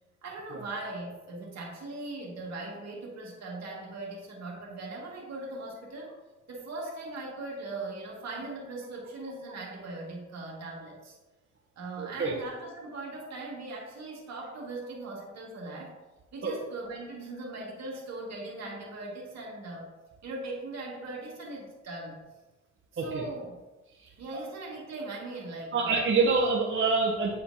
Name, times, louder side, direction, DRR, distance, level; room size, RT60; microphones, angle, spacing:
voice 1, 0.2-6.1 6.5-11.2 11.8-16.0 16.3-19.9 20.2-22.2 22.9-23.6 24.2-26.1, right 2 dB, 60° right, -2 dB, 2.0 m, -39 dB
voice 2, 12.0-12.3 16.4-16.5 23.0-23.2 24.0-24.4 25.7-27.4, right 4 dB, 45° right, -2 dB, 0.9 m, -27 dB
8.8 x 4.2 x 2.8 m, 1.1 s
cardioid pair, 90°, 30 cm